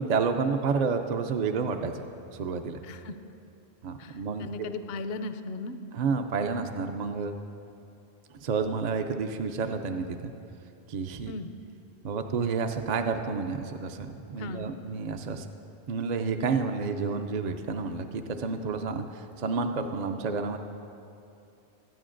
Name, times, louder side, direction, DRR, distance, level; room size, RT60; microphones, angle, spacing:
voice 1, 0.0-2.0 2.3-2.8 3.8-4.5 5.9-7.3 8.3-10.3 10.9-11.3 12.0-15.5 15.9-20.6, right 5 dB, 55° right, 5 dB, 0.5 m, -30 dB
voice 2, 2.8-3.2 4.0-5.8 11.3-11.5 14.4-14.7, left 2 dB, 70° left, 9 dB, 0.8 m, -37 dB
21.5 x 9.1 x 2.5 m, 2.7 s
omnidirectional pair, 1.1 m